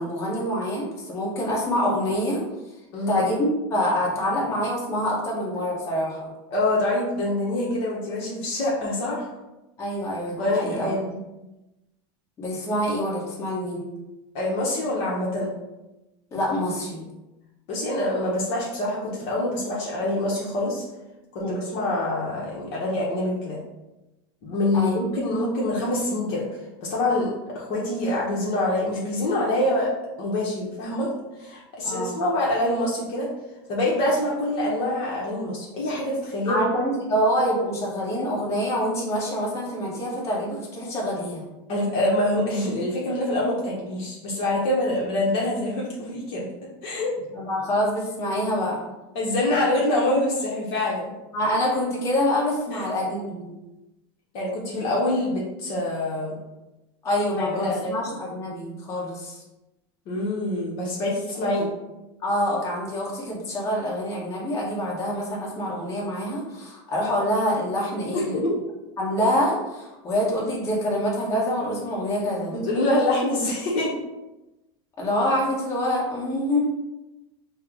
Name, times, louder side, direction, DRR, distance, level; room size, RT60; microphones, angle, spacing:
voice 1, 0.0-2.4 3.1-6.3 9.8-10.9 11.1-11.3 12.4-13.9 16.3-17.0 21.4-21.7 24.7-25.0 31.8-32.2 36.5-41.5 47.3-48.8 51.3-53.5 57.0-59.4 62.2-68.4 69.0-72.5 75.0-76.6, equal, 25° left, -5 dB, 1.1 m, -26 dB
voice 2, 2.9-3.2 6.5-9.3 10.4-11.1 14.3-15.5 17.7-20.8 21.3-23.6 24.4-26.4 26.8-29.9 30.2-31.1 31.4-33.3 33.7-36.6 41.7-46.5 46.8-47.1 49.1-51.1 52.7-52.8 54.3-56.4 57.4-58.0 60.1-61.7 68.1-68.5 72.5-73.9, left 1 dB, 50° left, -4 dB, 0.8 m, -25 dB
4.2 x 2.0 x 3.5 m, 1.0 s
supercardioid pair, 150°, 13 cm